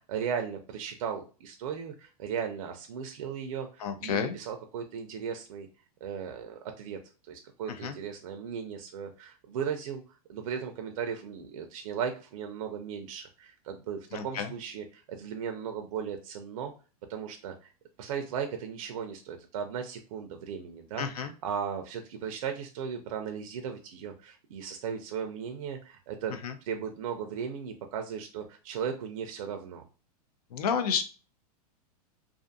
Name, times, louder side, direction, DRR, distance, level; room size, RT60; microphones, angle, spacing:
voice 1, 0.1-5.7 6.0-7.0 7.3-10.0 10.3-16.7 17.1-17.7 18.0-26.3 26.6-29.8, right 7 dB, 60° right, 5 dB, 0.4 m, -36 dB
voice 2, 3.8-4.3 7.8-7.9 14.1-14.5 21.0-21.3 26.4-26.5 30.5-31.0, left 7 dB, 75° left, 8 dB, 0.6 m, -30 dB
2.4 x 2.4 x 2.6 m, 0.35 s
supercardioid pair, 165°, 20 cm